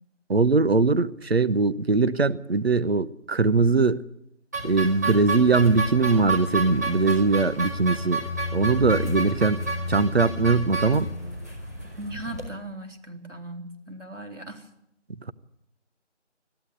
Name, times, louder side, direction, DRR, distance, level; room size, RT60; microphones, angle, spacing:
voice 1, 0.3-4.0 4.6-8.2 8.5-9.6 9.9-11.1, right 3 dB, 60° right, 0.9 m, -21 dB
sound 1, 4.5-12.5, right 3 dB, 15° right, 1.8 m, -31 dB
sound 2, 5.5-11.5, left 2 dB, 10° left, 1.8 m, -34 dB
voice 2, 12.0-14.7, right 1 dB, 85° right, 3.9 m, -38 dB
21.5 x 14.0 x 9.5 m
figure-of-eight pair, 170°, 36 cm